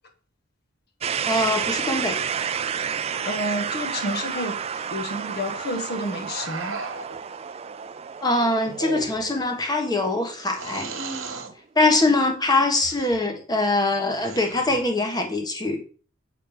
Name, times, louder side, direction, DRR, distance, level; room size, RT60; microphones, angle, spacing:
sound 1, 1.0-10.8, right 7 dB, 30° right, 0.3 m, -31 dB
voice 1, 1.3-2.2 8.2-10.9 11.7-15.8, left 2 dB, 20° left, 4 dB, 1.3 m, -23 dB
voice 2, 3.2-4.6 4.9-6.8, equal, 50° left, 5 dB, 1.5 m, -30 dB
sound 2, 6.3-7.2 8.7-9.4 10.5-11.5 12.8-13.2 14.1-14.8, right 4 dB, 75° right, 1.5 m, -35 dB
8.4 x 4.1 x 5.2 m, 0.41 s
head